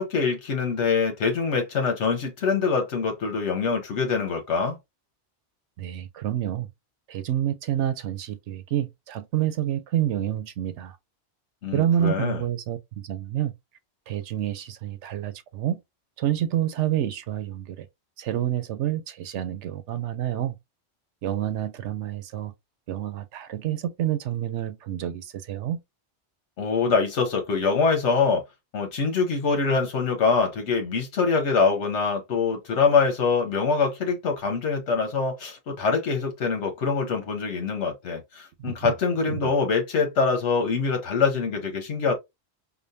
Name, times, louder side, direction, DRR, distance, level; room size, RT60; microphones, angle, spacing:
voice 1, 0.0-4.8 11.6-12.4 26.6-28.4 28.7-42.1, left 5 dB, 80° left, 1.1 m, -24 dB
voice 2, 5.8-6.7 7.1-11.0 11.7-13.5 14.1-15.8 16.2-17.9 18.2-20.5 21.2-22.5 22.9-25.8 38.6-38.9 39.3-39.5, right 11 dB, 85° right, 0.9 m, -28 dB
5.1 x 2.2 x 2.6 m
omnidirectional pair, 1.2 m